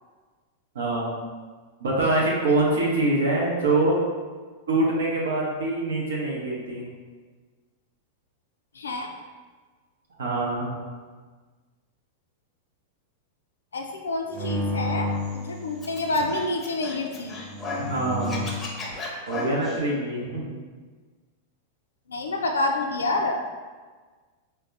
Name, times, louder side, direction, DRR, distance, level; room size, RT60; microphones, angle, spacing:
voice 1, 0.7-1.2 1.8-4.0 4.7-6.9 10.2-10.7 17.8-18.5 19.3-20.6, right 2 dB, 70° right, -3 dB, 0.8 m, -24 dB
voice 2, 8.7-9.1 13.7-17.4 22.1-23.4, left 2 dB, 75° left, 3 dB, 0.4 m, -28 dB
sound 1, 14.3-16.3 17.3-18.8, left 1 dB, 40° right, 0.5 m, -31 dB
Scratching (performance technique), 15.8-17.9 18.2-19.8, left 3 dB, 20° left, 0.7 m, -35 dB
4.4 x 2.3 x 2.5 m, 1.4 s
figure-of-eight pair, 95°, 0 cm